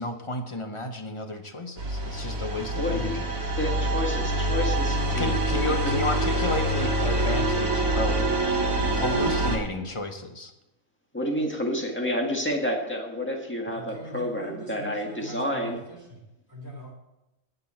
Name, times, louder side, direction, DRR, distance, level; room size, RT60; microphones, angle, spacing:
voice 1, 0.0-3.2 5.1-8.2 8.9-10.5, left 1 dB, 25° left, 5 dB, 0.9 m, -32 dB
sound 1, 1.8-9.6, right 1 dB, 70° right, 2.1 m, -25 dB
voice 2, 2.7-3.2 3.6-5.9 11.1-15.8, equal, 10° left, 1 dB, 1.8 m, -30 dB
voice 3, 13.7-16.9, right 1 dB, 15° right, -3 dB, 3.9 m, -42 dB
19.0 x 6.6 x 4.4 m, 0.93 s
omnidirectional pair, 1.5 m